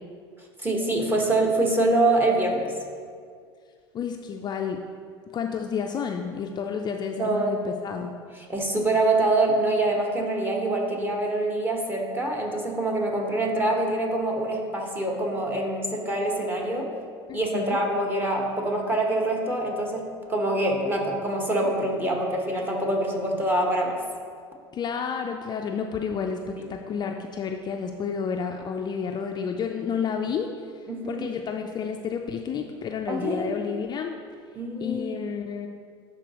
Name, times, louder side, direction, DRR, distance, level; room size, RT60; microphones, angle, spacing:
voice 1, 0.6-2.7 7.2-7.6 8.5-16.9 17.3-24.0 26.6-26.7 30.9-31.3 33.1-33.5 34.5-35.2, right 2 dB, 15° right, 0 dB, 1.3 m, -25 dB
voice 2, 3.9-4.8 5.3-8.1 17.3-17.8 24.7-34.1 34.8-35.7, left 6 dB, 30° left, 4 dB, 0.4 m, -30 dB
11.5 x 4.1 x 3.0 m, 2.1 s
hypercardioid pair, 85°, 14 cm